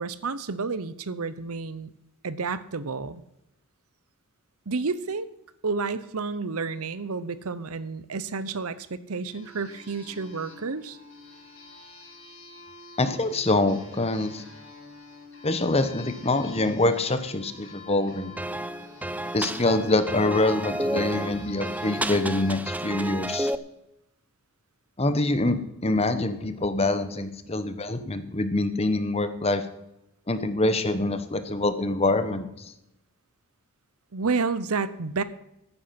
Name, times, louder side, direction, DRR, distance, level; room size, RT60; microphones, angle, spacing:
voice 1, 0.0-1.9 2.2-3.2 4.7-5.3 5.6-11.0 27.4-27.5 34.1-35.2, right 4 dB, 70° right, 15 dB, 0.8 m, -30 dB
sound 1, 9.3-22.6, left 2 dB, 60° left, 5.0 m, -47 dB
voice 2, 13.0-14.4 15.4-18.3 19.3-23.5 25.0-29.7 30.3-32.7, left 2 dB, 25° left, 11 dB, 1.1 m, -25 dB
sound 2, 18.4-23.6, right 1 dB, 5° right, 0.5 m, -31 dB
14.5 x 10.0 x 5.9 m, 0.88 s
head